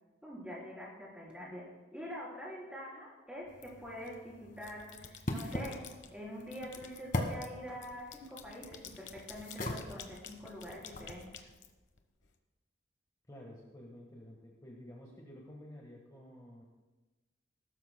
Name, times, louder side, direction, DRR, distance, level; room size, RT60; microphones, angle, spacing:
voice 1, 0.2-11.4, equal, 5° right, -5 dB, 3.8 m, -45 dB
sound 1, 3.5-11.2, left 1 dB, 50° left, 1.5 m, -42 dB
sound 2, 3.6-4.2 4.5-6.1 6.5-12.3, left 7 dB, 85° left, 1.1 m, -52 dB
voice 2, 13.3-16.6, equal, 20° left, -2 dB, 1.4 m, -51 dB
20.0 x 12.5 x 2.2 m, 1.2 s
head